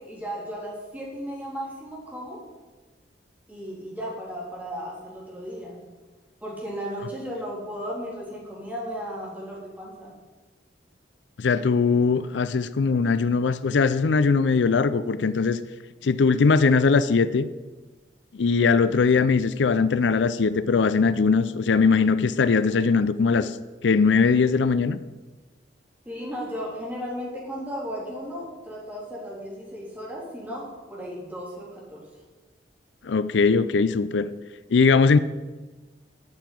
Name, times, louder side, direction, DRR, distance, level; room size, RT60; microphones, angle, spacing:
voice 1, 0.0-2.4 3.5-5.8 6.4-10.1 26.1-32.1, equal, 10° right, -4 dB, 3.4 m, -35 dB
voice 2, 11.4-15.6 16.0-17.5 18.3-23.6 23.8-25.0 33.0-34.3 34.7-35.2, left 4 dB, 80° left, 15 dB, 0.5 m, -20 dB
9.6 x 6.7 x 8.6 m, 1.2 s
head